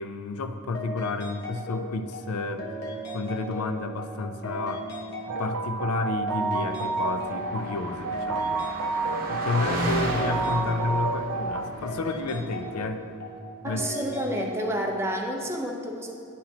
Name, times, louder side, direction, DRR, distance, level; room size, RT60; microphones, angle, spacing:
voice 1, 0.0-2.8 3.1-4.9 5.3-8.6 9.3-13.0 13.6-13.8, left 3 dB, 80° left, 8 dB, 0.5 m, -31 dB
sound 1, 0.7-15.5, equal, 50° left, 1.1 m, -38 dB
sound 2, 5.3-11.7, right 4 dB, 85° right, 0.4 m, -30 dB
Car passing by, 6.7-12.7, right 1 dB, 40° right, 1.0 m, -34 dB
voice 2, 13.6-16.1, right 1 dB, 10° right, 1 dB, 0.6 m, -30 dB
10.0 x 5.8 x 2.8 m, 2.5 s
head